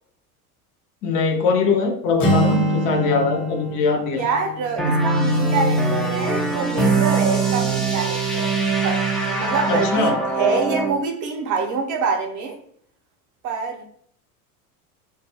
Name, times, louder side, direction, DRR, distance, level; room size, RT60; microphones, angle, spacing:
voice 1, 1.0-4.2 9.7-10.2, left 4 dB, 45° left, 3 dB, 0.6 m, -21 dB
Acoustic guitar, 2.2-6.1, equal, 80° left, 0.9 m, -25 dB
voice 2, 4.1-12.6 13.4-13.8, right 4 dB, 45° right, 2 dB, 0.6 m, -26 dB
sound 1, 4.8-11.0, right 3 dB, ahead, 0.3 m, -22 dB
2.5 x 2.3 x 2.7 m, 0.62 s
hypercardioid pair, 90°, 44 cm